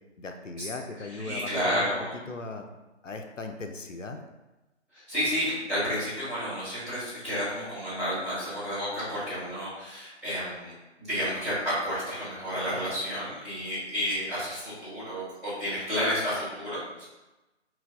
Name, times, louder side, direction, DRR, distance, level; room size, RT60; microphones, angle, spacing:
voice 1, 0.2-2.7 3.0-4.2, left 3 dB, 90° left, 5 dB, 0.6 m, -38 dB
voice 2, 1.1-2.1 4.9-10.7 11.0-17.0, equal, ahead, -20 dB, 1.3 m, -31 dB
5.1 x 3.0 x 2.5 m, 1.1 s
figure-of-eight pair, 150°, 37 cm